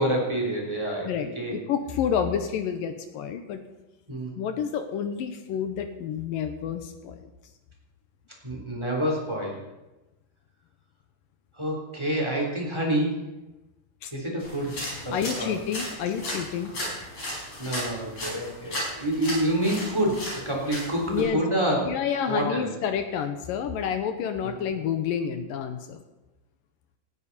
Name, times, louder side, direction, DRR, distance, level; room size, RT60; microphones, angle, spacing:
voice 1, 0.0-1.6 4.1-4.3 8.4-9.6 11.5-13.2 14.1-15.5 17.2-22.0 22.3-22.7 24.4-24.6, right 1 dB, 5° right, -2 dB, 3.2 m, -28 dB
voice 2, 1.0-3.6 4.4-7.3 14.0-14.1 15.1-16.7 21.1-21.4 21.9-26.0, left 8 dB, 75° left, 7 dB, 2.3 m, -29 dB
sound 1, 14.4-21.2, left 1 dB, 40° left, 6.0 m, -35 dB
18.5 x 14.0 x 4.2 m, 1.0 s
omnidirectional pair, 4.6 m